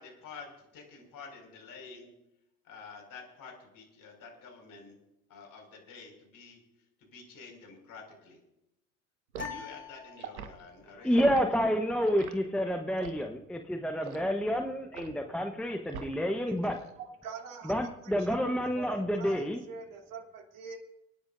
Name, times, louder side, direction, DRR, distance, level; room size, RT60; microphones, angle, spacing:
voice 1, 0.0-2.1 2.7-5.0 5.3-6.6 7.0-8.4 9.4-11.1, left 4 dB, 50° left, 2 dB, 5.3 m, -49 dB
sound 1, 9.3-10.8, left 6 dB, 25° left, 2.6 m, -44 dB
Liquid, 9.3-9.6 10.2-10.5 11.1-11.4 12.0-12.3 13.0-13.3 14.0-14.3 14.9-15.2 15.9-16.3 16.6-16.9, right 7 dB, 80° right, 1.4 m, -42 dB
voice 2, 11.0-16.7 17.6-19.6, equal, ahead, 4 dB, 1.0 m, -29 dB
voice 3, 17.0-17.7 18.0-20.8, right 5 dB, 50° right, 1 dB, 3.0 m, -44 dB
29.0 x 10.0 x 2.6 m, 0.86 s
hypercardioid pair, 75°, 43 cm